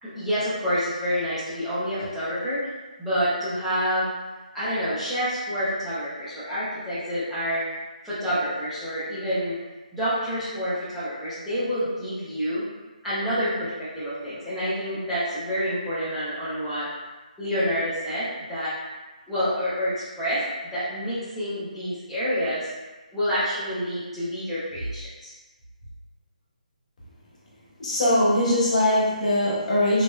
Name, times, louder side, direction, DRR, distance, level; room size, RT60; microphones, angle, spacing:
voice 1, 0.0-2.6 3.0-4.1 4.5-7.6 8.0-9.6 9.9-12.7 13.0-16.9 17.4-18.7 19.3-20.4 20.7-22.7 23.1-25.3, equal, ahead, -16 dB, 0.5 m, -28 dB
voice 2, 27.8-30.0, left 1 dB, 55° left, -6 dB, 1.0 m, -21 dB
3.0 x 2.0 x 2.2 m, 1.2 s
figure-of-eight pair, 160°, 5 cm